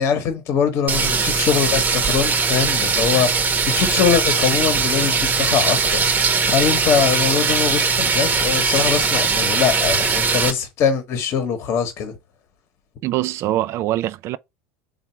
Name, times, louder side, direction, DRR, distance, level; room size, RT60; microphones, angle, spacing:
voice 1, 0.0-12.2, left 7 dB, 45° left, 1.0 m, -22 dB
sound 1, 0.9-10.5, right 4 dB, 30° right, 0.9 m, -20 dB
voice 2, 13.0-14.4, right 14 dB, 50° right, 0.4 m, -23 dB
3.6 x 2.4 x 4.3 m
supercardioid pair, 100°, 6 cm